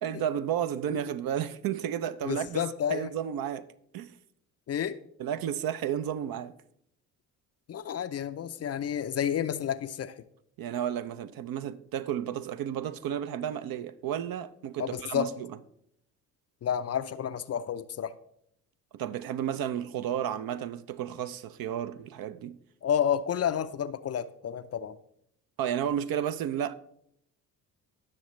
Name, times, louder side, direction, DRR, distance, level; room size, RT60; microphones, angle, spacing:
voice 1, 0.0-2.6 2.9-3.7 3.9-4.1 5.2-6.6 10.6-15.6 18.9-22.6 25.6-26.7, right 9 dB, 50° right, 0.6 m, -32 dB
voice 2, 2.2-3.1 4.7-5.0 7.7-10.1 14.8-15.3 16.6-18.1 22.8-25.0, left 9 dB, 35° left, 0.5 m, -30 dB
17.5 x 6.4 x 3.2 m
hypercardioid pair, 55°, 46 cm